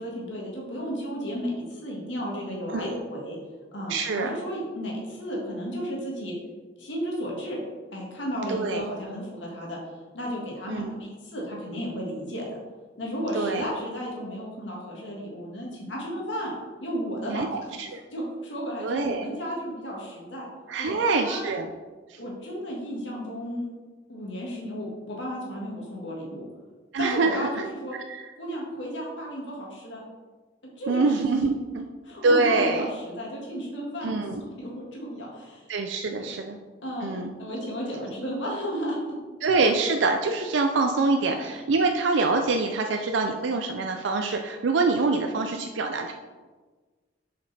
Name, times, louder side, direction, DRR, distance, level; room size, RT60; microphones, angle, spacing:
voice 1, 0.0-3.4 3.7-6.4 6.8-7.6 7.9-9.8 10.1-12.6 13.0-16.5 16.8-17.8 18.1-20.5 20.8-21.5 22.2-23.7 24.1-26.4 27.0-28.0 28.4-30.0 30.8-31.6 32.0-35.6 36.2-36.3 36.8-39.0 41.2-41.4, equal, 80° left, -3 dB, 1.9 m, -33 dB
voice 2, 3.9-4.3 8.5-8.8 10.7-10.9 13.3-13.7 17.3-18.0 18.8-19.3 20.7-21.7 22.1-22.2 26.9-27.4 28.1-28.2 30.9-31.8 32.2-32.8 34.0-34.4 35.7-36.6 37.0-37.3 39.4-46.1, right 3 dB, 80° right, 4 dB, 0.5 m, -25 dB
6.8 x 5.2 x 4.2 m, 1.4 s
head